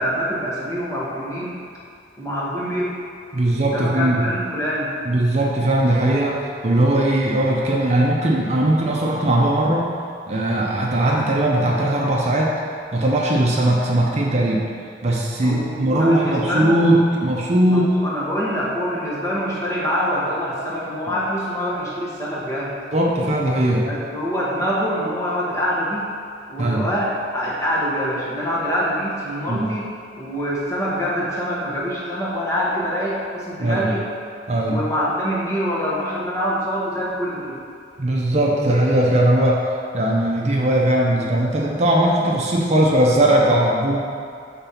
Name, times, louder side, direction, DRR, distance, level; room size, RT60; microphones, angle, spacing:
voice 1, 0.0-1.6 2.2-3.0 3.7-4.9 15.4-16.8 17.7-22.7 23.8-26.1 26.5-29.9 30.2-34.0 34.7-37.6, equal, 20° left, -7 dB, 1.3 m, -25 dB
voice 2, 3.3-4.3 5.0-9.9 10.3-12.5 12.9-14.7 15.0-17.9 22.9-23.9 26.6-26.9 29.5-29.6 33.6-33.9 34.5-34.8 38.0-44.0, right 1 dB, 40° right, -3 dB, 0.7 m, -19 dB
5.3 x 4.0 x 5.7 m, 2.3 s
head